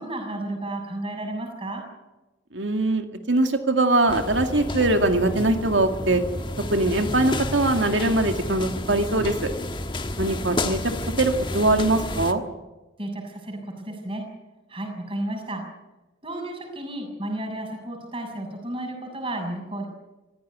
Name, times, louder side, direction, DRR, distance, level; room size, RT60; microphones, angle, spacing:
voice 1, 0.0-1.8 13.0-14.3 14.7-15.6 16.2-19.9, right 1 dB, 30° right, 3 dB, 6.4 m, -32 dB
voice 2, 2.5-6.2 6.7-9.5 10.2-12.4, right 2 dB, 80° right, 6 dB, 2.2 m, -22 dB
sound 1, 4.1-12.3, left 1 dB, 25° left, 1.4 m, -31 dB
24.5 x 16.0 x 9.6 m, 1.1 s
head